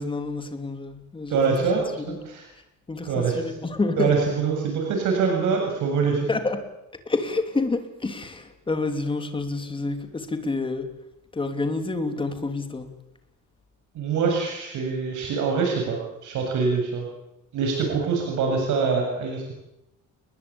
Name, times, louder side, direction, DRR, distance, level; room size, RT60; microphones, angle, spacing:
voice 1, 0.0-2.2 2.9-4.2 6.3-6.6 7.0-11.0 11.3-12.9, left 3 dB, 15° left, 6 dB, 3.1 m, -28 dB
voice 2, 1.3-2.5 3.1-3.4 4.0-6.3 13.9-17.0 17.5-19.5, right 5 dB, 65° right, 2 dB, 7.6 m, -24 dB
29.0 x 21.0 x 8.9 m, 0.89 s
cardioid pair, 160°, 32 cm